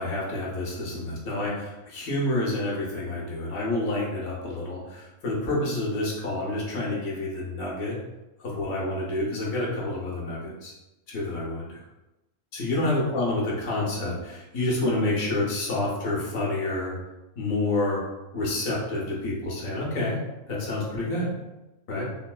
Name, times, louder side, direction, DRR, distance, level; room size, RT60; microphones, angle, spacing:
voice 1, 0.0-8.0 8.4-10.7 11.1-11.8 12.5-16.9 17.4-18.0 18.3-20.2 20.5-21.3 21.9-22.0, left 2 dB, 85° left, -3 dB, 1.3 m, -28 dB
3.8 x 2.2 x 2.2 m, 1.0 s
omnidirectional pair, 1.4 m